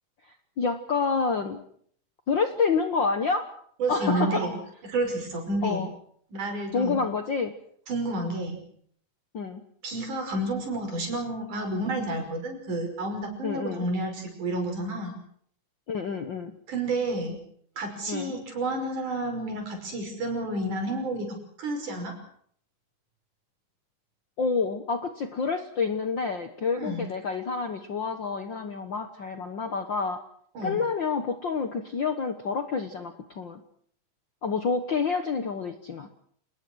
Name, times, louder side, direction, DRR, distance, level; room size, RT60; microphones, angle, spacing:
voice 1, 0.6-1.6 2.3-3.5 3.9-4.4 5.6-5.9 6.7-7.5 9.3-9.6 13.4-13.8 15.9-16.5 18.1-18.3 24.4-30.2 30.6-33.6 34.4-36.1, left 5 dB, 55° left, 8 dB, 1.4 m, -28 dB
voice 2, 3.8-4.6 4.8-5.8 6.3-7.0 7.9-8.6 9.8-15.2 16.7-17.4 17.8-21.3 21.6-22.1 26.8-27.1 30.6-30.8, right 2 dB, 70° right, 4 dB, 7.1 m, -30 dB
28.5 x 20.0 x 6.3 m, 0.62 s
omnidirectional pair, 3.7 m